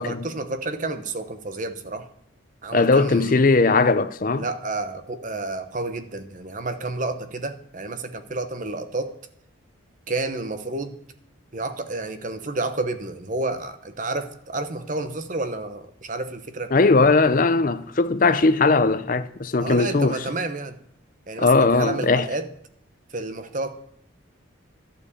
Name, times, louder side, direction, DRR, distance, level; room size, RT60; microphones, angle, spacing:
voice 1, 0.0-2.1 2.6-3.4 4.4-9.1 10.1-11.0 11.5-16.7 19.6-20.7 21.3-22.5 23.1-23.7, right 2 dB, 40° right, 0.9 m, -30 dB
voice 2, 2.7-4.5 16.7-20.2 21.4-22.3, left 3 dB, 40° left, 0.6 m, -19 dB
11.5 x 7.0 x 8.3 m
head